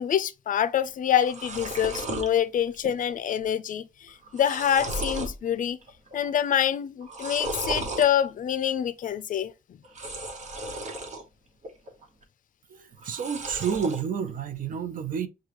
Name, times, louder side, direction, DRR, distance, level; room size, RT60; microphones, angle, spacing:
voice 1, 0.0-5.8 6.1-9.8, left 9 dB, 65° left, 0.4 m, -26 dB
sound 1, 0.8-0.9 1.1-2.3 2.7-3.2 3.4-3.5 4.1-5.4 5.8-6.3 7.0-8.1 9.8-11.2 11.6-12.2 13.0-14.0, right 2 dB, 55° right, 1.1 m, -35 dB
voice 2, 12.7-15.3, right 7 dB, 70° right, 0.6 m, -30 dB
6.6 x 2.3 x 3.0 m
wide cardioid pair, 145°, 15 cm